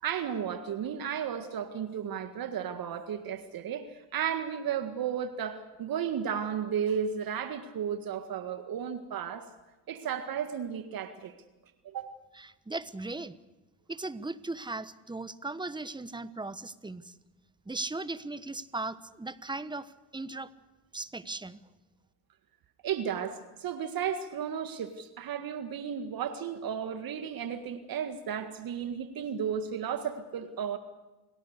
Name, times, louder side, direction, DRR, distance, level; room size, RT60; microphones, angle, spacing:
voice 1, 0.0-9.5 9.9-11.4 11.8-12.1 22.8-30.8, right 8 dB, 45° right, 9 dB, 1.8 m, -34 dB
voice 2, 12.3-13.4 13.9-17.1 17.6-20.5 20.9-21.6, right 2 dB, 10° right, 15 dB, 1.2 m, -38 dB
28.5 x 18.5 x 6.7 m, 1.1 s
hypercardioid pair, 65°, 47 cm